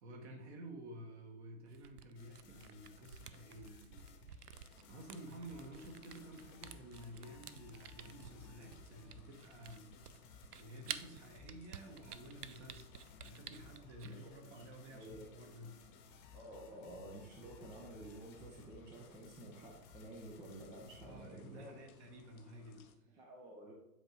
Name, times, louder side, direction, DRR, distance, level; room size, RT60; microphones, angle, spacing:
voice 1, 0.0-4.3 4.9-15.8 21.0-23.2, right 1 dB, 45° right, 4 dB, 1.4 m, -52 dB
Camera, 1.7-14.1, right 9 dB, 85° right, 0.5 m, -52 dB
sound 1, 2.1-21.3, left 4 dB, 35° left, 1.0 m, -60 dB
sound 2, 4.7-23.0, left 5 dB, 70° left, 0.8 m, -65 dB
voice 2, 14.0-14.6 14.9-15.3 16.3-21.8 23.2-23.7, right 1 dB, 10° right, 0 dB, 0.4 m, -51 dB
7.8 x 2.8 x 4.5 m, 0.88 s
hypercardioid pair, 115°, 45 cm